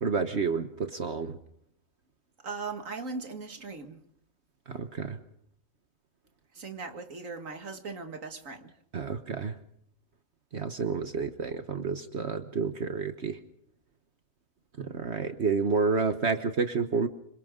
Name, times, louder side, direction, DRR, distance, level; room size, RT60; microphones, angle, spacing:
voice 1, 0.0-1.4 4.7-5.2 8.9-9.5 10.5-13.4 14.8-17.1, right 5 dB, 55° right, 1.4 m, -30 dB
voice 2, 2.4-4.0 6.5-8.7, right 4 dB, 70° right, 2.5 m, -39 dB
27.5 x 25.5 x 3.8 m
omnidirectional pair, 1.4 m